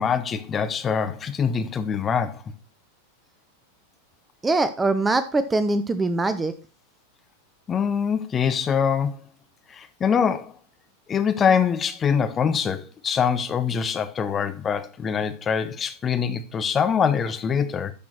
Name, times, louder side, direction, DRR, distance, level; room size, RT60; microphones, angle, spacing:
voice 1, 0.0-2.4 7.7-9.2 9.7-10.5 11.1-17.9, left 7 dB, 20° left, 1.0 m, -24 dB
voice 2, 4.4-6.5, right 2 dB, 10° right, 0.6 m, -22 dB
10.5 x 6.0 x 4.4 m
figure-of-eight pair, 90°, 0 cm